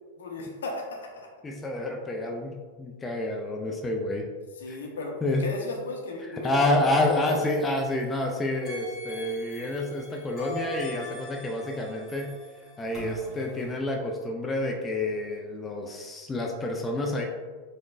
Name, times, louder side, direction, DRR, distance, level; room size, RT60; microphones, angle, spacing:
voice 1, 0.2-1.3 4.6-5.1 5.4-7.4, left 2 dB, 65° left, 0 dB, 0.6 m, -35 dB
voice 2, 1.4-4.3 4.7-4.8 5.2-5.5 6.2-12.3 12.8-17.2, left 1 dB, 15° left, 1 dB, 0.3 m, -28 dB
sound 1, 6.8-8.2 8.6-13.7, left 1 dB, 5° right, 1.2 m, -42 dB
4.8 x 2.1 x 2.4 m, 1.4 s
figure-of-eight pair, 90°, 0 cm